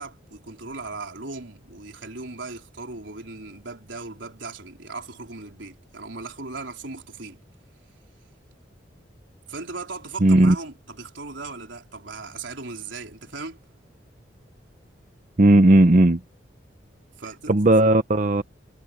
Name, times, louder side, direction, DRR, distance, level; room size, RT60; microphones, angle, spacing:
voice 1, 0.0-7.4 9.5-13.6 17.2-17.6, right 3 dB, 85° right, 4.0 m, -37 dB
voice 2, 10.2-10.5 15.4-16.2 17.5-18.4, right 1 dB, 40° right, 0.8 m, -16 dB
head